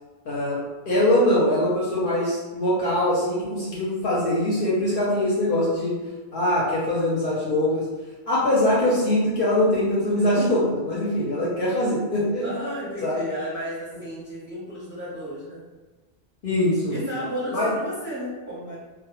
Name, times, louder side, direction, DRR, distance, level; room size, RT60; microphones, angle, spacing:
voice 1, 0.3-0.6 0.9-5.9 6.3-7.8 8.3-12.5 13.0-13.2 16.4-17.0 17.5-17.7, left 1 dB, 60° left, -7 dB, 0.6 m, -22 dB
voice 2, 12.4-15.6 16.9-18.8, equal, 10° right, -9 dB, 0.6 m, -33 dB
2.1 x 2.0 x 2.9 m, 1.3 s
omnidirectional pair, 1.2 m